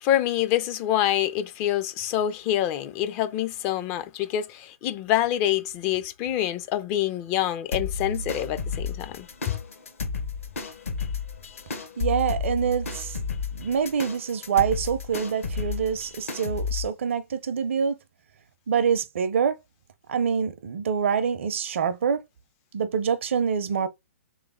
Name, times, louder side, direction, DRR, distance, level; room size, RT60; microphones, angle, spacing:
voice 1, 0.0-9.5, left 12 dB, 30° left, 0.4 m, -26 dB
sound 1, 7.7-16.9, left 4 dB, 70° left, 1.0 m, -32 dB
voice 2, 12.0-13.2 13.5-18.0 18.7-19.6 20.1-22.2 22.7-23.9, right 7 dB, 60° right, 0.6 m, -25 dB
3.3 x 3.1 x 3.6 m
figure-of-eight pair, 115°, 8 cm